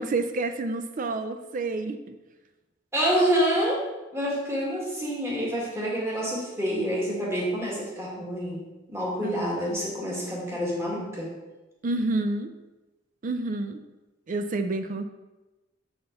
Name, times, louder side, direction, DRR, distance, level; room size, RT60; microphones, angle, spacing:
voice 1, 0.0-2.2 9.2-9.8 11.8-12.5 13.2-13.8 14.3-15.1, right 2 dB, 45° right, 8 dB, 0.4 m, -29 dB
voice 2, 2.9-3.8 4.1-8.6 8.9-11.3, equal, 15° right, -5 dB, 1.9 m, -27 dB
6.8 x 5.8 x 3.9 m, 1.1 s
head